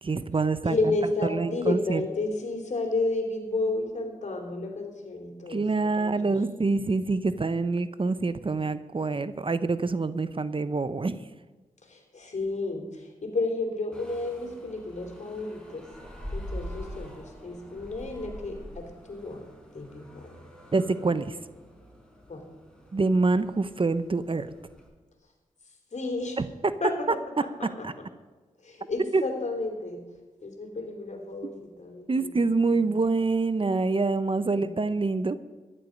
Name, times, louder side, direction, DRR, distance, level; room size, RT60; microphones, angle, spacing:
voice 1, 0.0-0.8 1.3-2.0 5.5-11.2 20.7-21.4 22.9-24.5 26.4-26.5 27.8-27.9 29.1-29.2 32.1-35.4, right 3 dB, 40° right, 13 dB, 0.8 m, -26 dB
voice 2, 0.6-6.3 11.8-15.9 16.3-19.4 19.7-20.3 22.3-22.4 25.9-26.4 26.8-27.9 28.6-30.0 30.4-32.3 32.6-32.9 34.5-34.7, left 2 dB, 60° left, 3 dB, 3.5 m, -32 dB
sound 1, 13.9-24.9, equal, 5° left, 5.2 m, -44 dB
14.0 x 11.0 x 5.3 m, 1.2 s
cardioid pair, 45°, 14 cm